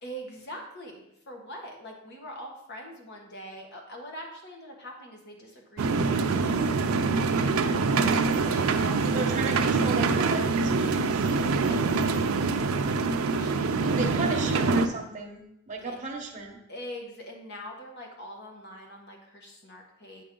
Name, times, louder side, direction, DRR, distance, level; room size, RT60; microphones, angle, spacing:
voice 1, 0.0-7.1 7.9-9.4 11.3-14.3 15.8-16.0 16.7-20.2, equal, 50° left, 1 dB, 1.4 m, -44 dB
sound 1, 5.8-14.9, right 4 dB, 75° right, 0.5 m, -25 dB
voice 2, 9.1-11.3 14.0-16.6, right 3 dB, 35° right, 1 dB, 1.0 m, -35 dB
8.7 x 4.1 x 3.8 m, 0.81 s
head